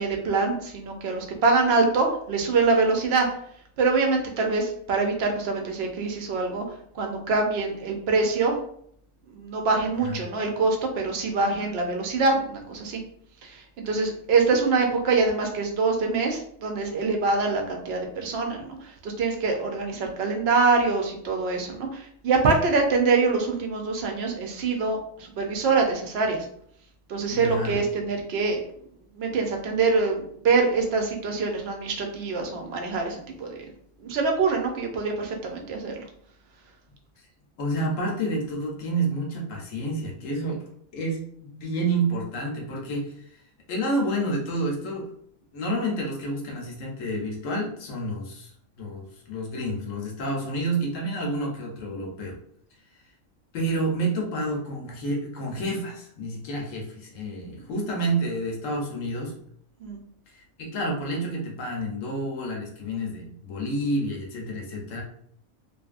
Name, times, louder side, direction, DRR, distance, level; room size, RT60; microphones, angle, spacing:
voice 1, 0.0-3.3 3.8-8.6 9.3-13.0 13.4-26.5 27.1-28.6 29.2-33.6 34.0-36.0 59.8-60.0, right 4 dB, 60° right, 2 dB, 0.7 m, -24 dB
voice 2, 27.3-27.8 37.6-40.6 40.9-43.1 43.7-45.0 45.5-48.5 48.8-52.4 53.5-59.3 60.3-65.0, right 1 dB, 75° left, -1 dB, 1.1 m, -29 dB
2.7 x 2.5 x 2.4 m, 0.66 s
omnidirectional pair, 1.3 m